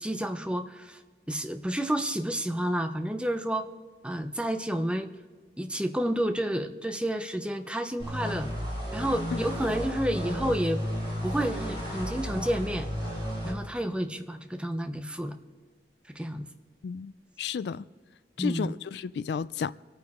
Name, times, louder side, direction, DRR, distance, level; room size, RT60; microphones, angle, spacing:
voice 1, 0.0-1.0 1.3-3.7 4.0-5.1 5.6-8.5 8.9-10.8 11.2-15.4 16.1-16.4 18.4-18.7, right 1 dB, 5° right, 0.6 m, -30 dB
sound 1, 8.0-13.5, equal, 30° right, 5.3 m, -33 dB
voice 2, 17.4-17.8 18.4-19.7, left 6 dB, 70° left, 0.3 m, -32 dB
26.0 x 9.2 x 3.6 m
head